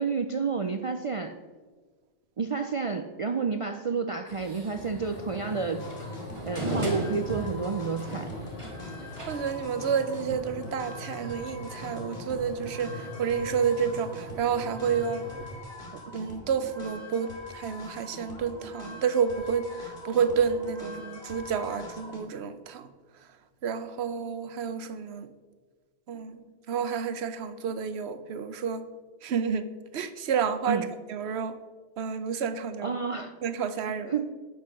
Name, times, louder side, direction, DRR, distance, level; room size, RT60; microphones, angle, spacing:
voice 1, 0.0-1.3 2.4-5.8 6.5-8.3 30.7-30.9 32.8-33.3 33.9-34.3, right 5 dB, 50° right, 7 dB, 0.4 m, -30 dB
sound 1, 4.3-9.6, right 1 dB, 25° right, 2.0 m, -37 dB
sound 2, 5.1-15.6, left 1 dB, 35° left, 1.2 m, -42 dB
sound 3, 5.8-22.2, left 1 dB, 65° left, 2.4 m, -44 dB
voice 2, 9.3-15.3 16.1-22.9 23.6-25.3 26.1-28.8 29.2-29.7 29.9-31.6 32.0-33.0 33.4-34.1, right 6 dB, 70° right, 12 dB, 1.0 m, -30 dB
9.9 x 6.1 x 6.3 m, 1.4 s
omnidirectional pair, 1.2 m